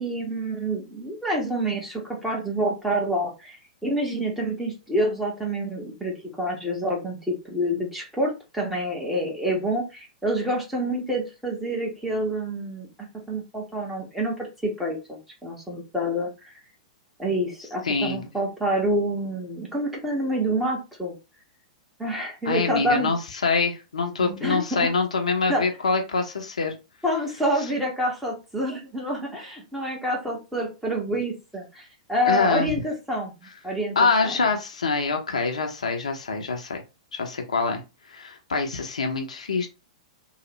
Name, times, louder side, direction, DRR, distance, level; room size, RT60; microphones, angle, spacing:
voice 1, 0.0-12.9 13.3-14.3 14.6-16.5 17.2-21.1 22.0-23.1 24.2-24.9 25.5-25.6 27.0-33.3 33.6-34.0 34.2-34.4, right 1 dB, 5° right, -2 dB, 1.3 m, -27 dB
voice 2, 17.8-18.3 22.4-26.7 32.3-32.7 34.0-36.8 37.1-37.8 38.1-39.7, left 4 dB, 75° left, 3 dB, 0.7 m, -25 dB
3.1 x 2.4 x 3.0 m, 0.28 s
figure-of-eight pair, 105°, 4 cm